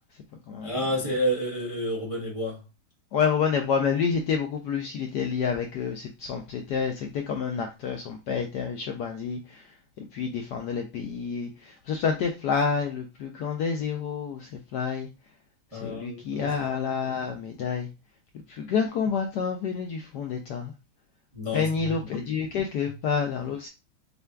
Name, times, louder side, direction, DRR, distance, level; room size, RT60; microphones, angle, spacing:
voice 1, 0.6-2.6 15.7-16.6 21.3-22.0, equal, 25° right, 0.7 m, -30 dB
voice 2, 3.1-9.6 10.0-15.1 15.8-17.9 18.5-20.7 21.5-23.7, left 6 dB, 75° left, 1.0 m, -28 dB
6.5 x 2.6 x 2.2 m
omnidirectional pair, 2.2 m